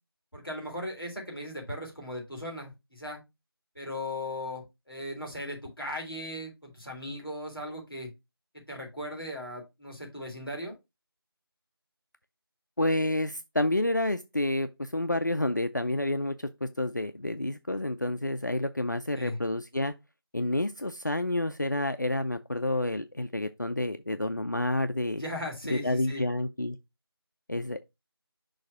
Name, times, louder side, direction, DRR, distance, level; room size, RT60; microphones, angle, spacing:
voice 1, 0.3-3.2 3.7-8.1 8.7-10.7 19.1-19.4 25.2-26.3, left 1 dB, ahead, 1.8 m, -38 dB
voice 2, 12.8-19.9 20.3-25.2 25.7-26.8 27.5-27.8, left 1 dB, 45° left, 0.4 m, -29 dB
6.3 x 2.7 x 5.6 m
figure-of-eight pair, 170°, 13 cm